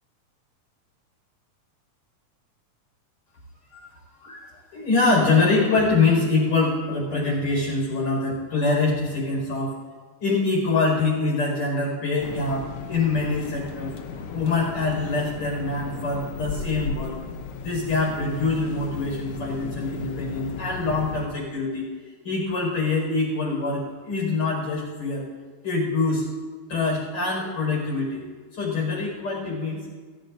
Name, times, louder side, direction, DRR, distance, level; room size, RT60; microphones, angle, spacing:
voice 1, 4.2-9.8 10.2-17.2 17.6-21.9 22.2-25.3 25.6-26.2 26.7-28.2 28.5-29.9, left 3 dB, 45° left, -2 dB, 6.2 m, -24 dB
sound 1, 12.2-21.3, left 5 dB, 70° left, 1.4 m, -35 dB
21.5 x 14.5 x 2.7 m, 1.5 s
omnidirectional pair, 3.6 m